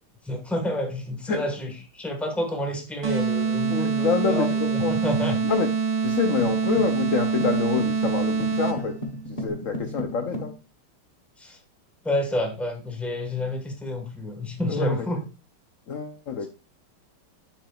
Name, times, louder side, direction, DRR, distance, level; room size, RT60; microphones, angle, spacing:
voice 1, 0.2-5.4 11.4-11.6 12.0-15.2, left 1 dB, ahead, 1.0 m, -29 dB
sound 1, 3.0-9.0, right 5 dB, 40° right, 1.8 m, -25 dB
voice 2, 3.7-4.9 5.4-5.7 6.0-9.0 9.3-10.5 14.7-14.9 15.9-16.5, left 6 dB, 70° left, 0.7 m, -27 dB
sound 2, 6.4-10.6, equal, 30° left, 1.0 m, -35 dB
9.9 x 5.9 x 2.4 m
omnidirectional pair, 2.3 m